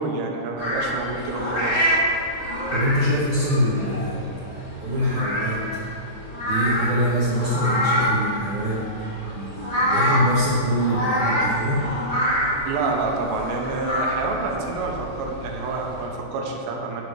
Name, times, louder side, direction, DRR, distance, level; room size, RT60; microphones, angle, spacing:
voice 1, 0.0-2.0 12.7-17.0, right 3 dB, 75° right, 0 dB, 3.3 m, -28 dB
sound 1, 0.6-16.1, equal, 15° left, 1.9 m, -26 dB
voice 2, 2.7-4.3 4.8-5.6 6.4-9.1 9.3-11.9, equal, 60° right, -6 dB, 2.3 m, -24 dB
15.5 x 5.4 x 6.5 m, 2.9 s
omnidirectional pair, 5.1 m